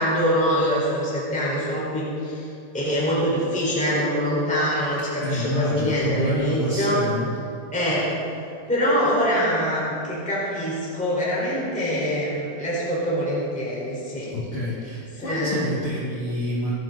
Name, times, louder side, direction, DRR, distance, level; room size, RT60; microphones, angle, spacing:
voice 1, 0.0-2.4 2.7-6.9 7.7-8.1 8.7-14.3 15.2-15.6, equal, ahead, -6 dB, 4.3 m, -24 dB
voice 2, 5.2-7.3 14.3-16.7, left 1 dB, 40° left, -7 dB, 2.7 m, -27 dB
26.5 x 11.0 x 4.1 m, 2.6 s
omnidirectional pair, 4.3 m